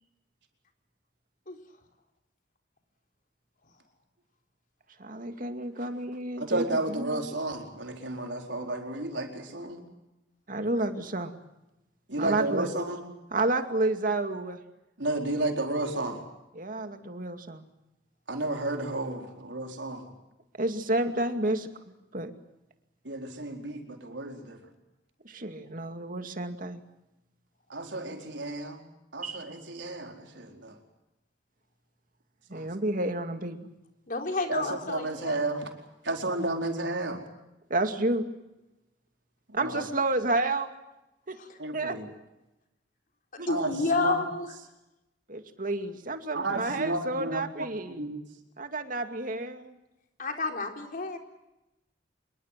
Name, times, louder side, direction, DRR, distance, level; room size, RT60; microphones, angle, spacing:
voice 1, 5.0-7.3 10.5-11.4 12.2-12.7 13.3-14.6 16.5-17.6 20.6-21.7 22.1-22.3 25.2-26.8 29.2-29.5 32.5-33.7 37.7-38.2 39.5-40.7 41.3-41.4 41.7-42.0 43.4-43.5 45.3-48.1 48.6-49.8, right 2 dB, 50° right, 7 dB, 2.4 m, -30 dB
voice 2, 6.4-9.8 12.1-13.0 15.0-16.2 18.3-20.0 23.0-24.6 27.7-28.8 29.1-30.7 32.5-32.6 34.5-34.6 34.9-35.6 36.0-37.2 39.6-39.7 41.6-42.1 43.5-43.7 44.0-44.1 46.3-47.4 47.9-48.2, right 2 dB, 90° right, 3 dB, 4.5 m, -32 dB
voice 3, 34.1-35.4 39.7-40.0 41.4-41.6 43.5-44.5 50.2-51.2, left 3 dB, 50° left, 4 dB, 4.1 m, -30 dB
26.0 x 23.0 x 7.6 m, 0.95 s
head